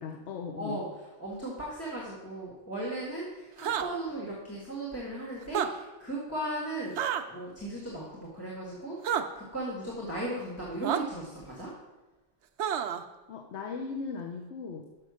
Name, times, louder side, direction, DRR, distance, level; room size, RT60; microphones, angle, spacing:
voice 1, 0.0-0.8 13.3-14.9, left 5 dB, 80° left, 3 dB, 1.0 m, -38 dB
voice 2, 0.5-7.0 7.3-11.7, right 1 dB, 15° left, -6 dB, 1.6 m, -37 dB
Sampli Ha, 3.6-3.9 5.4-5.7 7.0-7.2 9.0-9.2 10.8-11.0 12.6-13.0, right 9 dB, 80° right, 0.9 m, -29 dB
6.6 x 5.8 x 6.2 m, 1.1 s
omnidirectional pair, 1.2 m